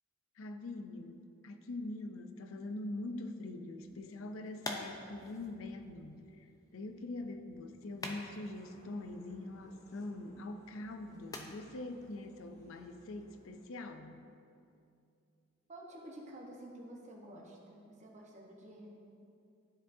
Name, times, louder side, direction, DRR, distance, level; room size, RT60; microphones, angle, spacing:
voice 1, 0.4-14.2, left 2 dB, 80° left, 7 dB, 0.5 m, -43 dB
sound 1, 3.7-13.5, left 2 dB, 15° left, 0.5 m, -50 dB
sound 2, 8.6-13.6, equal, 35° left, 1.3 m, -64 dB
voice 2, 15.7-19.0, right 1 dB, 35° right, -1 dB, 1.0 m, -50 dB
12.0 x 4.6 x 2.7 m, 2.5 s
head